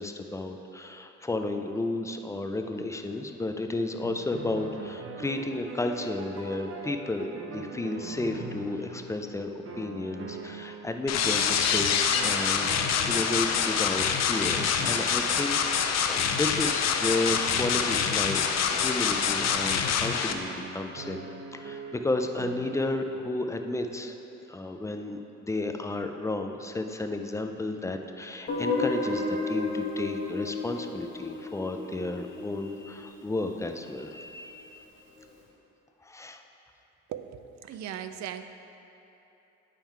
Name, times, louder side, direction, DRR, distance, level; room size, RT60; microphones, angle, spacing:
voice 1, 0.0-9.5 9.8-12.7 13.0-18.4 18.7-24.1 24.5-34.8 36.1-36.4, left 2 dB, 10° left, 5 dB, 0.4 m, -32 dB
sound 1, 4.0-9.4 9.7-10.9 11.2-16.7 17.2-22.8, right 4 dB, 45° right, 0.8 m, -43 dB
sound 2, 11.1-20.3, left 7 dB, 60° left, 0.5 m, -26 dB
Guitar, 28.5-33.3, left 3 dB, 40° left, 1.3 m, -32 dB
voice 2, 37.1-38.5, right 10 dB, 65° right, 10 dB, 0.4 m, -38 dB
8.9 x 3.7 x 4.5 m, 2.9 s
cardioid pair, 90°, 30 cm